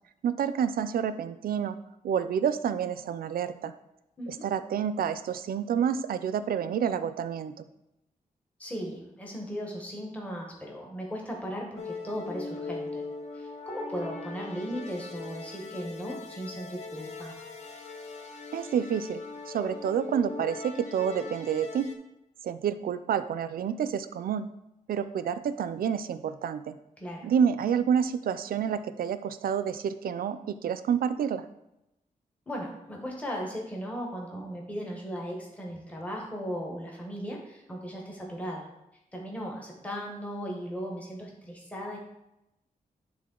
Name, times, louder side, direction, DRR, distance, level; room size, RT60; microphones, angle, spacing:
voice 1, 0.2-1.8 2.0-3.7 4.3-7.5 18.5-19.2 19.5-21.9 22.4-24.5 24.9-26.7 27.2-31.4, right 8 dB, 90° right, 13 dB, 0.4 m, -29 dB
voice 2, 8.6-13.0 13.3-17.3 27.0-27.3 32.5-38.7 39.1-42.0, equal, 10° left, -1 dB, 1.0 m, -37 dB
sound 1, 11.8-22.0, left 3 dB, 50° left, 0.7 m, -40 dB
9.6 x 3.5 x 3.8 m, 0.88 s
wide cardioid pair, 180°, 15 cm